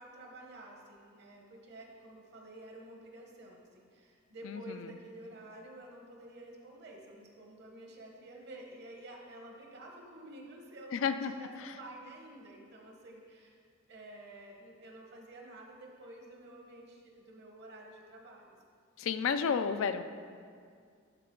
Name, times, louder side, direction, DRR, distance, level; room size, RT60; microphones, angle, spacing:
voice 1, 0.0-13.6 13.9-18.5, right 1 dB, 55° right, 1 dB, 1.1 m, -50 dB
voice 2, 4.4-4.9 10.9-11.3 11.6-11.7 19.0-20.0, left 6 dB, 65° left, 10 dB, 0.4 m, -32 dB
11.5 x 4.2 x 3.8 m, 2.2 s
head